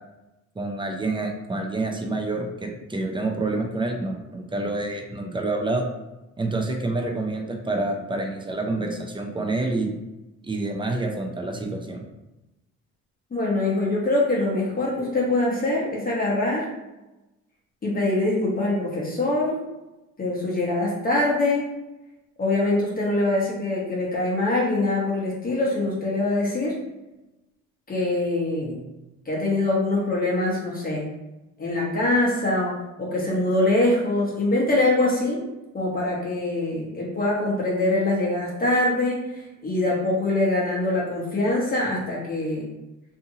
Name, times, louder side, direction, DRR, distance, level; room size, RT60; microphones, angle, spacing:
voice 1, 0.6-5.9 6.4-9.9 10.4-12.0, right 2 dB, 15° right, 2 dB, 0.5 m, -27 dB
voice 2, 13.3-16.7 17.8-19.6 20.2-21.7 22.4-26.8 27.9-28.8 29.3-31.1 31.6-35.4 35.7-42.7, left 2 dB, 30° left, -5 dB, 0.9 m, -24 dB
2.6 x 2.6 x 2.7 m, 1.0 s
cardioid pair, 90°, 30 cm